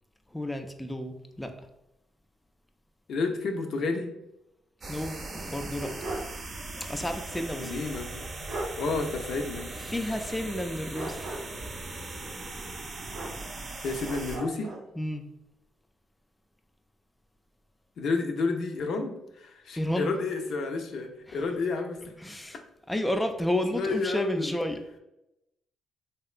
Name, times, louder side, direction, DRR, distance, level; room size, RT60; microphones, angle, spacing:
voice 1, 0.3-1.5 4.9-5.9 6.9-7.8 9.8-11.3 15.0-15.2 19.8-20.1 21.3-21.4 22.2-22.6 22.9-24.8, left 1 dB, 10° left, 5 dB, 0.3 m, -31 dB
voice 2, 3.1-4.1 7.6-8.4 8.7-9.7 13.8-14.7 18.0-22.1 23.7-24.5, left 3 dB, 70° left, 4 dB, 0.5 m, -31 dB
sound 1, 4.8-14.4, right 2 dB, 45° right, 0.6 m, -39 dB
sound 2, 5.4-6.4 6.7-6.8 8.1-8.2 8.5-8.8 10.9-11.7 13.1-13.7 14.0-14.9, right 1 dB, 85° right, 0.8 m, -37 dB
3.3 x 2.9 x 2.4 m, 0.87 s
cardioid pair, 90°, 0 cm